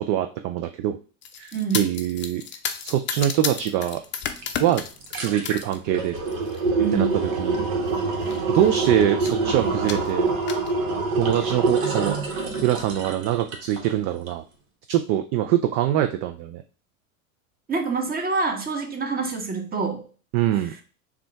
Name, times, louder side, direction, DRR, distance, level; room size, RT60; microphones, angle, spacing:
voice 1, 0.1-1.0 1.4-2.4 2.8-4.0 4.6-4.8 5.2-6.1 6.9-7.6 8.5-10.3 11.1-14.4 14.9-16.6 20.3-20.7, right 11 dB, 50° right, 7 dB, 0.4 m, -24 dB
sound 1, 1.2-5.8 6.2-6.6 7.4-7.6 7.9-8.0 8.2-8.8 9.3-9.4 9.9-10.7, left 7 dB, 30° left, 0.5 m, -32 dB
voice 2, 1.5-1.9 6.8-7.2 17.7-20.0, right 4 dB, 20° right, 3 dB, 1.0 m, -26 dB
sound 2, 4.4-4.5 4.8-13.9 14.3-14.4, right 3 dB, 70° right, 1.2 m, -25 dB
3.6 x 2.3 x 4.4 m, 0.37 s
hypercardioid pair, 90°, 41 cm